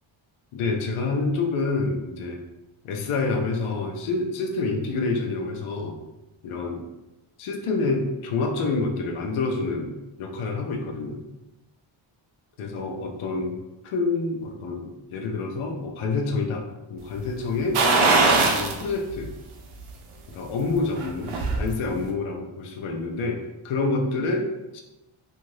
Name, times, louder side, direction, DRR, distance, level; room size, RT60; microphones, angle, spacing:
voice 1, 0.5-2.4 2.8-6.0 6.4-6.8 7.4-9.9 10.2-11.2 12.6-13.6 13.8-16.6 16.9-17.8 18.4-19.3 20.3-24.8, left 3 dB, 80° left, 2 dB, 0.6 m, -27 dB
sound 1, 17.7-18.8 19.2-19.3 20.8-21.6 22.0-22.1, right 3 dB, 80° right, 0.6 m, -20 dB
2.6 x 2.5 x 3.1 m, 0.99 s
wide cardioid pair, 170°, 49 cm